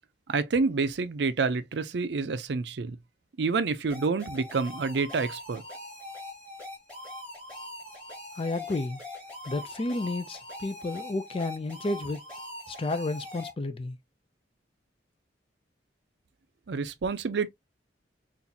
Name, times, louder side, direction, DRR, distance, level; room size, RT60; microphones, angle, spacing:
voice 1, 0.3-3.0 3.4-5.6 16.7-17.5, right 4 dB, 65° right, 0.5 m, -28 dB
sound 1, 3.9-13.5, left 1 dB, 5° left, 2.0 m, -42 dB
voice 2, 8.4-9.0 9.5-12.2 12.7-14.0, left 2 dB, 30° left, 0.4 m, -31 dB
3.9 x 2.5 x 2.7 m
head